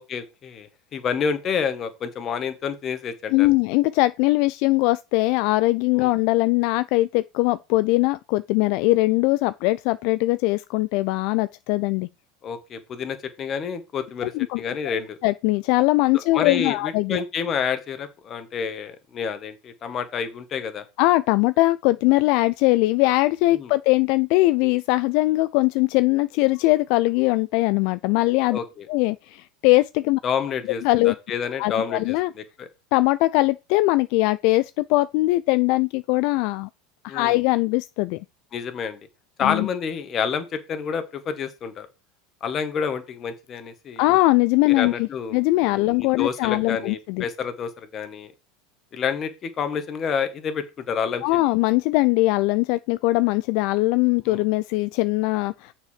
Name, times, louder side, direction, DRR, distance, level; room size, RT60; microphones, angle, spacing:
voice 1, 0.0-3.5 5.9-6.1 12.4-15.2 16.3-20.8 23.5-23.7 28.5-28.9 30.2-32.7 37.1-37.4 38.5-39.0 39.4-41.9 42.4-44.1 44.8-45.4 45.7-48.3 48.9-51.2 54.3-54.4, left 6 dB, 35° left, 1.7 m, -29 dB
voice 2, 3.3-12.1 14.2-14.6 15.2-17.2 21.0-28.6 28.9-30.2 30.8-31.1 31.6-32.3 32.9-36.7 37.0-38.2 39.4-39.7 44.0-47.2 51.2-55.7, left 20 dB, 65° left, 0.3 m, -21 dB
6.8 x 4.5 x 6.7 m
supercardioid pair, 105°, 0 cm